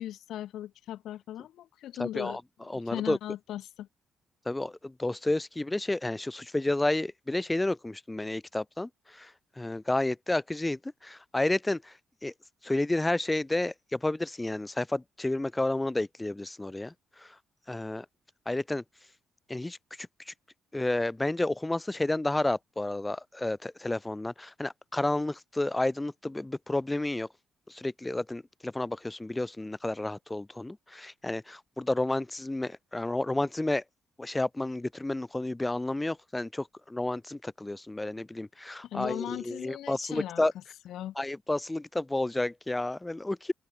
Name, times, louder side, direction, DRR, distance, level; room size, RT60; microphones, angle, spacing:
voice 1, 0.0-3.9 38.8-40.4 40.9-41.1, left 12 dB, 75° left, 0.4 m, -38 dB
voice 2, 2.0-2.4 2.7-3.2 4.5-9.3 9.6-11.9 12.2-12.3 12.6-16.9 17.2-17.3 17.7-18.1 18.5-18.8 19.5-19.8 20.3-20.4 20.7-27.3 27.7-33.8 34.2-40.5 41.2-43.5, left 2 dB, 15° left, 0.5 m, -31 dB
open air
supercardioid pair, 60°, 0 cm